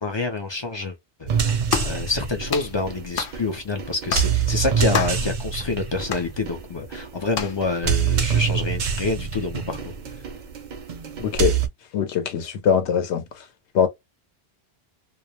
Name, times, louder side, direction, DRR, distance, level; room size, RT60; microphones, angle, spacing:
voice 1, 0.0-1.5 1.8-9.8, left 3 dB, 45° left, 0.3 m, -27 dB
sound 1, 1.3-11.7, right 7 dB, 55° right, 0.6 m, -26 dB
sound 2, 1.7-2.0 2.5-2.7 3.2-3.4 4.1-4.3 4.9-5.3 6.1-6.3 7.3-7.6, left 7 dB, 65° left, 0.7 m, -27 dB
voice 2, 11.2-11.5 11.9-13.2 13.7-13.9, left 8 dB, 85° left, 0.9 m, -21 dB
2.3 x 2.0 x 2.8 m
omnidirectional pair, 1.1 m